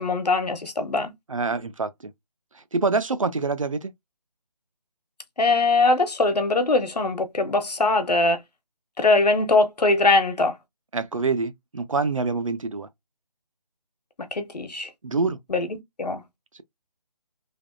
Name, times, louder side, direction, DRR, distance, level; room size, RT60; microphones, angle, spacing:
voice 1, 0.0-1.1 5.4-8.4 9.0-10.5 14.3-14.9 15.5-16.2, left 3 dB, 75° left, 1.0 m, -21 dB
voice 2, 1.3-1.9 2.7-3.9 10.9-12.9 15.0-15.4, right 4 dB, 55° right, 0.4 m, -25 dB
3.3 x 2.2 x 2.4 m
figure-of-eight pair, 180°, 21 cm